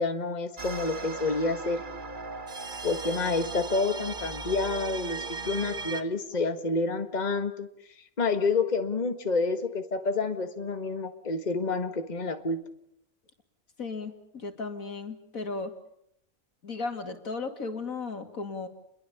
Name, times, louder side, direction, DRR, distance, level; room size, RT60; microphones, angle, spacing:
voice 1, 0.0-1.8 2.8-7.7 8.2-12.6, left 3 dB, 30° left, 7 dB, 1.7 m, -28 dB
sound 1, 0.6-6.0, right 3 dB, 40° right, 1.4 m, -37 dB
voice 2, 13.8-15.7 16.6-18.7, left 3 dB, 80° left, 6 dB, 3.0 m, -35 dB
29.5 x 22.5 x 7.0 m, 0.74 s
omnidirectional pair, 1.4 m